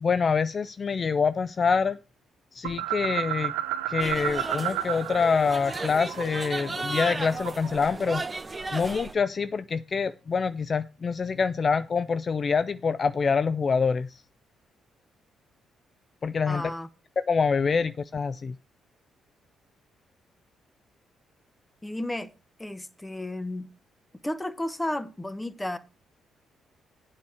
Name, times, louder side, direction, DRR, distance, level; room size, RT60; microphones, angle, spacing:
voice 1, 0.0-2.0 2.5-3.5 3.9-8.2 8.7-14.2 16.2-16.7 17.2-18.6, left 5 dB, 45° left, 0.4 m, -26 dB
sound 1, 2.6-5.2 5.5-7.8, right 13 dB, 80° right, 0.6 m, -32 dB
sound 2, 4.0-9.1, right 3 dB, 25° right, 0.8 m, -35 dB
voice 2, 16.5-16.9 21.8-22.3 22.6-23.7 24.2-25.8, left 1 dB, 10° left, 1.0 m, -32 dB
8.4 x 4.8 x 6.9 m
hypercardioid pair, 45°, 0 cm